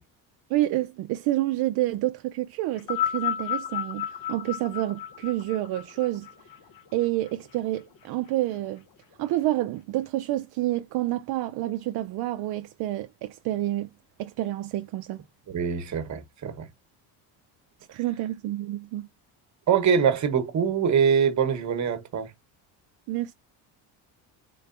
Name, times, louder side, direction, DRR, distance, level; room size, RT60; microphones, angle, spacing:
voice 1, 0.5-6.3 6.9-8.8 9.2-13.9 14.2-15.2 17.9-19.1 23.1-23.3, right 15 dB, 60° right, 0.5 m, -28 dB
sound 1, 2.8-7.3 8.2-8.3, left 11 dB, 50° left, 0.8 m, -32 dB
voice 2, 15.5-16.7 19.7-22.3, right 7 dB, 40° right, 1.0 m, -24 dB
3.8 x 3.3 x 2.4 m
cardioid pair, 110°, 43 cm